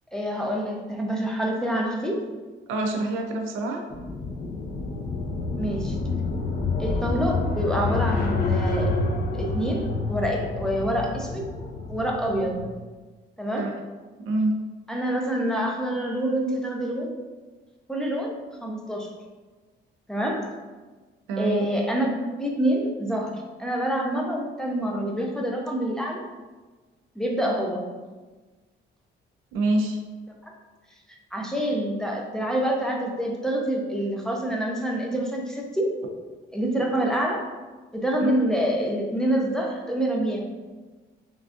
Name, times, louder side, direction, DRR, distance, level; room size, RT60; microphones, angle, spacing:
voice 1, 0.1-2.2 5.6-6.0 6.8-9.0 9.3-11.5 11.9-12.7 13.4-13.7 14.9-17.1 17.9-18.3 18.6-19.1 20.1-20.5 21.4-26.2 27.2-27.9 30.4-30.5 31.3-35.9 36.5-37.4 37.9-40.4, right 1 dB, 5° left, -1 dB, 0.5 m, -26 dB
voice 2, 2.7-3.8 13.6-13.7 14.2-14.6 21.3-21.7 29.5-30.0 38.2-38.3, right 2 dB, 90° right, 3 dB, 0.5 m, -26 dB
sound 1, 3.9-12.7, left 3 dB, 45° left, 0.6 m, -28 dB
3.4 x 2.4 x 2.5 m, 1.3 s
cardioid pair, 90°, 20 cm